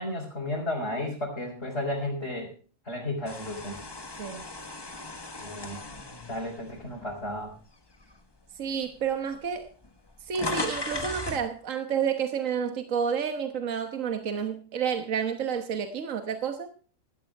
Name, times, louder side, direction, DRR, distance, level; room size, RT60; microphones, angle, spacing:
voice 1, 0.0-2.5 2.8-3.8 5.4-5.8 6.3-7.5, left 1 dB, 50° left, 4.2 m, -33 dB
sound 1, 3.2-7.5 8.0-8.2 9.1-9.2 9.4-11.5, left 2 dB, 20° left, 1.3 m, -37 dB
voice 2, 8.6-9.7 10.2-16.7, right 7 dB, 70° right, 1.6 m, -30 dB
16.5 x 13.5 x 3.4 m
omnidirectional pair, 1.4 m